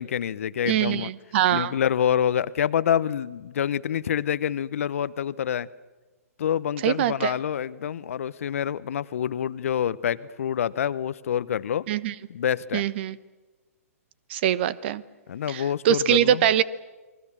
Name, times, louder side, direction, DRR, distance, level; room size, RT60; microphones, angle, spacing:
voice 1, 0.0-1.1 1.5-5.7 6.4-11.8 12.3-12.8 15.3-16.5, left 9 dB, 60° left, 17 dB, 0.8 m, -27 dB
voice 2, 0.7-1.7 6.8-7.3 11.9-12.1 12.7-13.2 14.3-15.0 15.5-16.6, right 11 dB, 45° right, 19 dB, 1.0 m, -23 dB
29.5 x 21.0 x 7.3 m, 1.2 s
hypercardioid pair, 130°, 8 cm